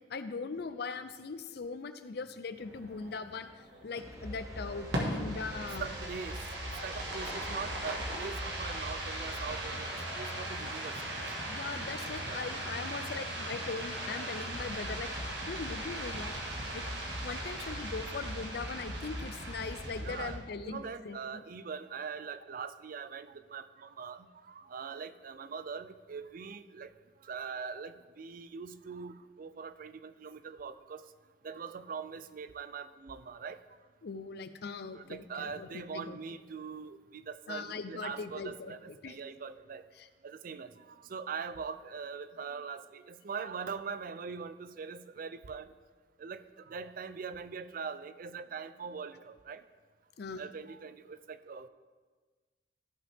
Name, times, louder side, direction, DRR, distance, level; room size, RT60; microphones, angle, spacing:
voice 1, 0.1-3.5 3.8-5.9 11.5-15.1 15.5-16.4 16.7-16.9 17.2-21.4 34.0-36.2 37.5-38.7 39.0-39.2 40.0-40.1 50.2-50.4, left 4 dB, 60° left, 11 dB, 0.5 m, -40 dB
sound 1, 2.6-20.4, right 1 dB, 75° right, 1.7 m, -38 dB
sound 2, 4.0-6.9, right 2 dB, 20° right, 1.1 m, -51 dB
voice 2, 5.6-11.3 12.3-12.4 16.5-17.2 20.0-26.9 27.2-31.0 31.4-33.6 34.9-39.8 40.2-45.7 46.2-49.6 50.4-51.7, right 5 dB, 50° right, 12 dB, 0.4 m, -42 dB
14.5 x 5.6 x 3.5 m, 1.4 s
head